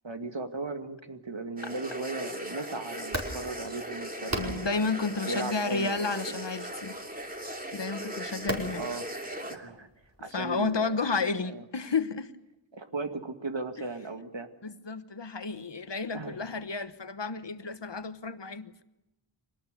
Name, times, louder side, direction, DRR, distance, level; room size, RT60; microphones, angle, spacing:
voice 1, 0.0-4.7 5.3-6.2 8.7-9.0 9.4-9.9 10.2-11.6 12.7-14.5 16.1-16.4, right 3 dB, 75° right, 6 dB, 2.2 m, -37 dB
sound 1, 1.6-9.6, right 1 dB, 20° right, 2.9 m, -39 dB
sound 2, 3.0-10.8, right 1 dB, 35° right, 5.1 m, -41 dB
voice 2, 4.4-7.0 7.7-8.9 10.3-12.3 14.6-18.8, left 4 dB, 70° left, 12 dB, 1.3 m, -32 dB
24.0 x 18.5 x 6.8 m, 0.91 s
wide cardioid pair, 40°, 45 cm